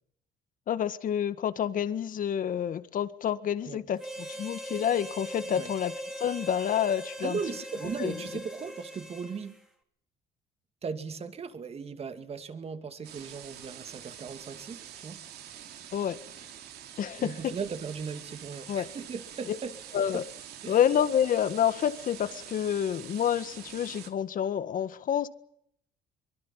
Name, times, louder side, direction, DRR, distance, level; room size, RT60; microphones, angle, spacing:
voice 1, 0.7-7.4 8.0-8.2 15.9-16.2 17.0-17.5 18.7-18.9 19.5-19.6 19.9-20.2 20.6-25.3, left 9 dB, 55° left, 1.7 m, -28 dB
Harmonica, 4.0-9.6, right 1 dB, 5° right, 3.5 m, -40 dB
voice 2, 7.2-9.6 10.8-15.2 17.2-19.7 20.1-20.2 20.6-20.8, right 5 dB, 35° right, 2.5 m, -37 dB
sound 1, 13.0-24.1, right 10 dB, 75° right, 3.1 m, -46 dB
24.0 x 23.0 x 7.4 m
cardioid pair, 110°, 17 cm